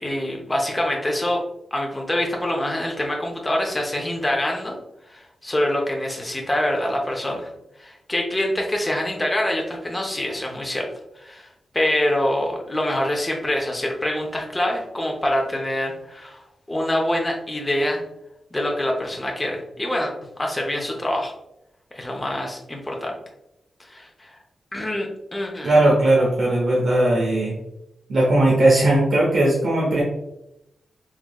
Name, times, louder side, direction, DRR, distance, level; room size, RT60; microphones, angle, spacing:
voice 1, 0.0-1.4 1.7-4.8 5.1-7.5 7.8-10.9 11.2-11.5 11.7-16.4 16.7-18.0 18.5-20.1 20.4-21.3 21.9-23.2 23.8-24.4 24.7-25.7, left 1 dB, 15° left, 0 dB, 0.5 m, -25 dB
voice 2, 25.6-27.5 28.1-30.0, right 1 dB, 50° right, -5 dB, 0.7 m, -18 dB
3.6 x 3.0 x 2.2 m, 0.85 s
wide cardioid pair, 175°, 0 cm